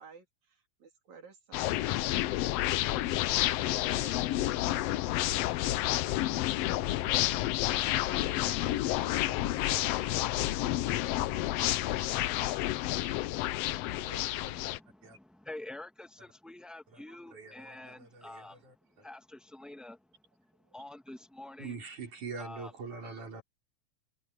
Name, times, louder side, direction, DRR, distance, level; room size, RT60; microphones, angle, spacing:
voice 1, 0.0-12.2 12.5-12.6 13.8-14.7 17.1-17.2 17.6-17.9 19.0-19.1 20.6-20.8 23.0-23.3, right 5 dB, 70° right, 5.0 m, -55 dB
sound 1, 1.5-14.8, left 15 dB, 80° left, 1.4 m, -30 dB
voice 2, 14.6-18.7 19.0-21.8 22.4-22.7, left 2 dB, ahead, 1.3 m, -47 dB
voice 3, 17.3-18.7 21.6-23.4, right 4 dB, 85° right, 7.0 m, -43 dB
omnidirectional pair, 3.4 m